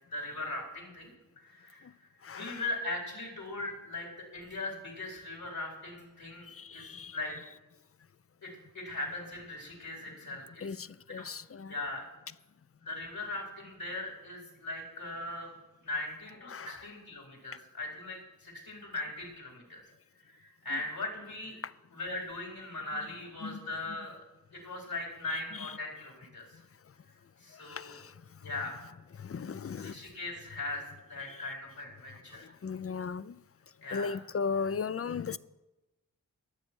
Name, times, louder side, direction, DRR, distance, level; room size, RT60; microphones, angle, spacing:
voice 1, 0.1-2.1 2.3-7.3 8.4-10.6 11.1-11.3 11.7-12.0 12.8-15.5 15.8-19.8 20.2-21.6 21.9-24.2 24.5-26.6 27.4-28.0 28.4-28.8 29.8-30.8 31.1-32.5 33.8-34.2, left 2 dB, 75° left, 4.3 m, -39 dB
voice 2, 2.2-2.6 6.5-7.2 10.6-11.7 16.5-16.8 20.7-20.8 21.6-21.7 23.4-24.0 25.3-25.7 27.5-28.1 28.4-28.5 29.2-30.0 31.3-31.4 32.3-33.4 33.9-35.4, left 5 dB, 40° left, 0.5 m, -37 dB
21.5 x 7.5 x 4.6 m
cardioid pair, 45°, 36 cm